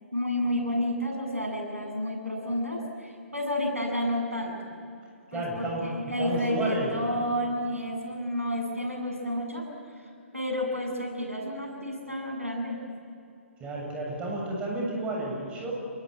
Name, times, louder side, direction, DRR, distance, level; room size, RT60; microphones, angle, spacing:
voice 1, 0.1-4.6 5.3-9.6 10.0-12.8, equal, 90° right, 1 dB, 7.9 m, -30 dB
voice 2, 5.3-5.9 6.2-6.9 13.6-15.7, right 2 dB, 15° right, -2 dB, 7.5 m, -31 dB
28.0 x 22.0 x 9.6 m, 2.6 s
figure-of-eight pair, 125°, 7 cm